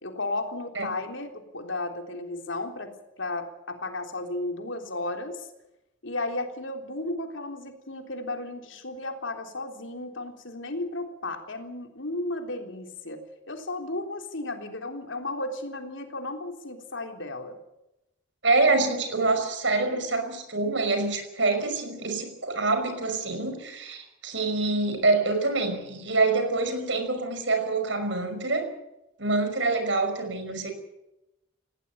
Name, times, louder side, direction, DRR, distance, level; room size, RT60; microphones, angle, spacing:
voice 1, 0.0-2.9 3.2-5.5 6.0-17.6, left 2 dB, 75° left, 5 dB, 3.6 m, -34 dB
voice 2, 18.4-28.7 29.2-30.7, right 3 dB, 70° right, 8 dB, 5.7 m, -26 dB
19.5 x 17.5 x 8.7 m, 0.90 s
head